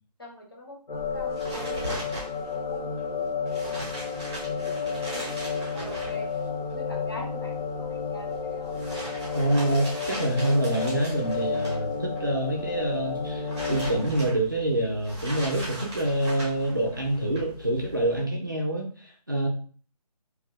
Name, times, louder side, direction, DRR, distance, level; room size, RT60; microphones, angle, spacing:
voice 1, 0.2-3.8 4.3-8.7, equal, 35° left, -2 dB, 0.8 m, -44 dB
sound 1, 0.9-14.1, left 5 dB, 85° left, 1.3 m, -32 dB
sound 2, 0.9-18.2, equal, 5° right, 0.8 m, -40 dB
voice 2, 9.3-19.5, right 1 dB, 30° right, -1 dB, 0.4 m, -26 dB
2.7 x 2.1 x 3.7 m, 0.41 s
hypercardioid pair, 175°, 21 cm